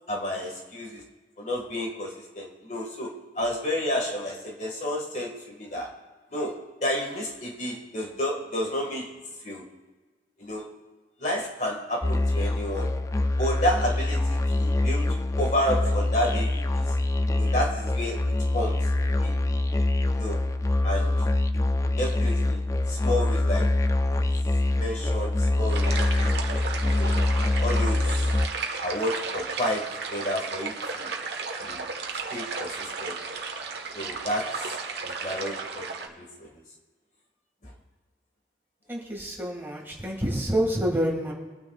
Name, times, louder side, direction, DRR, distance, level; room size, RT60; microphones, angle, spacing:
voice 1, 0.1-1.0 1.4-5.9 6.3-9.1 9.4-9.6 10.4-10.7 11.2-12.9 13.4-16.8 17.3-18.2 18.5-18.8 19.2-19.4 20.1-20.4 20.8-21.2 22.0-22.6 22.9-23.7 24.1-24.3 24.8-26.3 27.0-27.2 27.6-28.3 28.8-31.1 31.6-31.9 32.3-33.2 33.9-34.8 35.0-36.5 37.6-37.7, equal, 45° left, -1 dB, 1.7 m, -31 dB
Musical instrument, 12.0-28.5, left 2 dB, 20° left, 0.3 m, -24 dB
sound 1, 25.7-36.1, right 4 dB, 75° right, 1.2 m, -34 dB
voice 2, 38.9-41.3, equal, 15° right, -2 dB, 1.9 m, -27 dB
23.5 x 9.3 x 2.4 m, 1.3 s
head